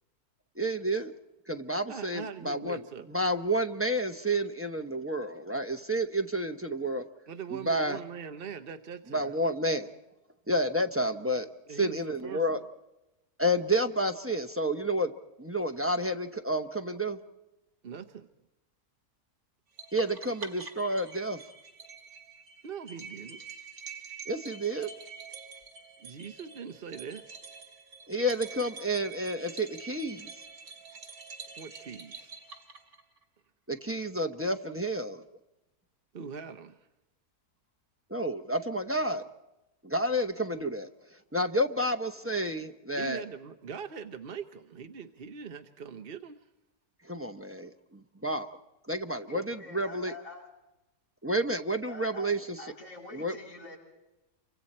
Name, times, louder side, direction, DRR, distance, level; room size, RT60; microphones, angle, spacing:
voice 1, 0.6-1.1 1.5-2.8 3.1-7.0 7.7-8.0 9.1-9.9 10.5-11.5 11.8-12.6 13.4-15.1 15.4-17.2 19.9-21.4 24.3-24.9 28.1-30.3 33.7-35.2 38.1-39.2 39.8-40.9 41.3-43.2 47.0-48.5 48.9-50.1 51.2-52.6 53.1-53.3, right 1 dB, 10° right, 5 dB, 0.6 m, -30 dB
voice 2, 1.9-3.1 7.3-9.4 11.7-12.7 17.8-18.3 22.6-23.4 26.0-27.2 31.6-32.3 36.1-36.9 42.9-46.5 49.3-49.5, right 7 dB, 45° right, 8 dB, 0.9 m, -42 dB
sound 1, 19.8-33.2, right 5 dB, 75° right, 2.3 m, -46 dB
voice 3, 49.5-50.5 51.9-52.3 52.6-53.8, left 2 dB, 60° left, -5 dB, 8.2 m, -46 dB
29.0 x 25.0 x 4.3 m, 0.98 s
omnidirectional pair, 1.6 m